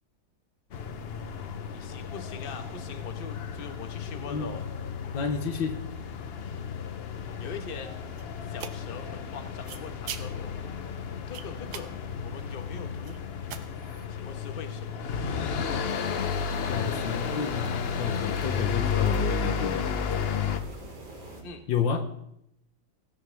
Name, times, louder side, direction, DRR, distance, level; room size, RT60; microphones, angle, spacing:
sound 1, 0.7-20.6, left 6 dB, 90° left, 0.5 m, -32 dB
voice 1, 1.7-4.6 7.4-8.0 8.5-10.5 11.3-11.9 12.2-13.2 14.1-15.1 21.4-21.6, left 5 dB, 30° left, 6 dB, 1.3 m, -42 dB
voice 2, 5.1-5.8 16.7-19.9 21.7-22.1, left 6 dB, 75° left, 7 dB, 1.7 m, -30 dB
sound 2, 7.3-14.1, right 8 dB, 80° right, 1.7 m, -46 dB
sound 3, 15.9-21.4, right 1 dB, 65° right, 4.0 m, -43 dB
16.5 x 15.5 x 3.5 m, 0.77 s
omnidirectional pair, 2.1 m